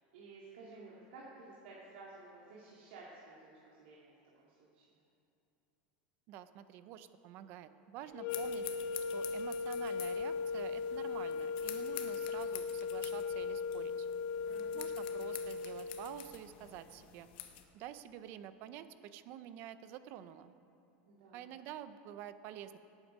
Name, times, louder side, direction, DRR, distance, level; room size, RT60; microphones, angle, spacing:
voice 1, 0.1-5.0 14.5-14.7 21.1-21.5, right 3 dB, 85° right, -6 dB, 2.3 m, -54 dB
voice 2, 6.3-8.7 9.1-14.1 14.7-17.3 17.7-20.5 21.3-22.8, right 11 dB, 40° right, 12 dB, 0.5 m, -48 dB
sound 1, 8.1-16.3, left 5 dB, 35° left, 0.4 m, -38 dB
sound 2, 8.3-17.6, left 12 dB, 60° left, 1.0 m, -49 dB
17.5 x 9.0 x 5.2 m, 2.8 s
supercardioid pair, 175°, 6 cm